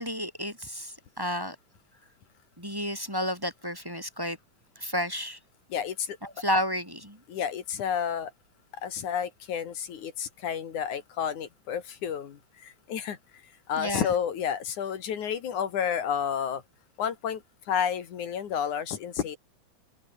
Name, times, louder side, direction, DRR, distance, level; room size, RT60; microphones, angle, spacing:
voice 1, 0.0-1.6 2.6-4.4 4.8-5.4 6.2-7.2 13.8-14.1, equal, 5° right, 5.1 m, -31 dB
voice 2, 5.7-6.2 7.3-8.3 8.8-13.2 13.7-16.6 17.0-17.4 17.7-19.4, left 8 dB, 75° left, 3.5 m, -30 dB
open air
omnidirectional pair, 3.5 m